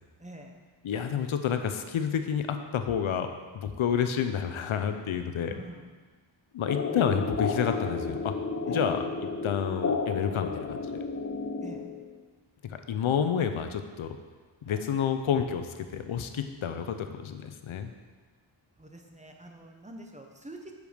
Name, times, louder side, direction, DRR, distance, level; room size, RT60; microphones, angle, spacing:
voice 1, 0.2-0.5 5.5-6.0 6.9-7.0 8.7-8.8 11.6-11.8 14.6-14.8 18.8-20.7, right 1 dB, 15° right, 2 dB, 0.9 m, -46 dB
voice 2, 0.8-5.5 6.5-8.3 8.7-9.1 9.4-11.1 12.7-14.2 14.7-17.9, left 8 dB, 80° left, 7 dB, 0.8 m, -29 dB
sound 1, 6.7-12.2, left 4 dB, 35° left, 0.8 m, -32 dB
8.1 x 6.9 x 5.1 m, 1.4 s
wide cardioid pair, 120°, 48 cm